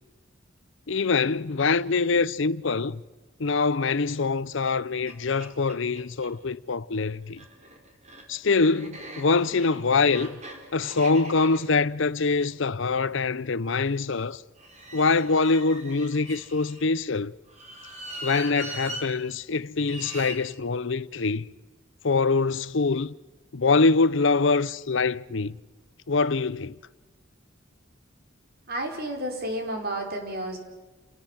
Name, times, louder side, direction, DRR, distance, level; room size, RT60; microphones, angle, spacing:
voice 1, 0.9-3.0 3.4-7.4 8.3-10.4 10.7-14.4 14.9-17.3 18.2-21.5 22.0-23.1 23.5-25.6 26.1-26.7, left 4 dB, 70° left, 0.7 m, -24 dB
sound 1, 4.6-4.7 5.1-5.2 5.4-6.3 7.2-13.4 14.6-16.8 17.5-19.1 19.8-20.4, right 1 dB, 35° right, 4.6 m, -41 dB
voice 2, 28.7-30.6, right 1 dB, 50° right, 5.1 m, -31 dB
29.5 x 18.5 x 7.5 m
head